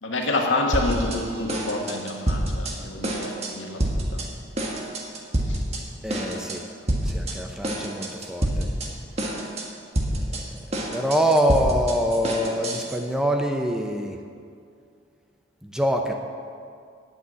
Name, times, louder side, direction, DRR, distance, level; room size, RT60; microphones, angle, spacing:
voice 1, 0.0-3.8 4.1-4.2 5.5-5.6, left 2 dB, 85° left, 1 dB, 1.8 m, -27 dB
sound 1, 0.7-1.2 1.5-2.7 3.0-3.5 3.8-4.3 4.6-5.8 6.1-6.6 6.9-7.3 7.6-8.9 9.2-9.6 9.9-13.0, right 1 dB, 35° right, 1.5 m, -27 dB
voice 2, 6.0-6.6 7.0-8.7 10.9-14.2 15.6-16.1, equal, 5° right, 3 dB, 0.7 m, -24 dB
9.0 x 8.3 x 9.3 m, 2.3 s
head